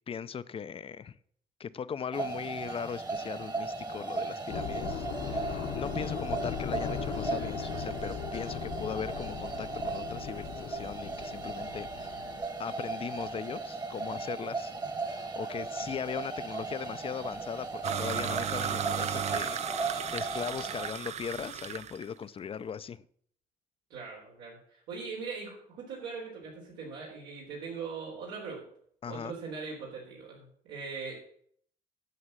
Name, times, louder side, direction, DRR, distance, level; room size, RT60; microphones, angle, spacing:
voice 1, 0.1-1.2 1.6-12.1 12.6-14.7 15.1-23.0 29.0-29.3, left 7 dB, 35° left, 0.5 m, -39 dB
sound 1, 2.1-20.9, right 3 dB, 25° right, 1.3 m, -37 dB
sound 2, 4.5-12.7, left 8 dB, 75° left, 1.2 m, -38 dB
sound 3, 17.8-22.0, right 8 dB, 40° right, 0.5 m, -35 dB
voice 2, 23.9-28.6 29.1-31.3, right 5 dB, 90° right, 3.8 m, -41 dB
9.7 x 7.2 x 7.4 m
cardioid pair, 110°, 17 cm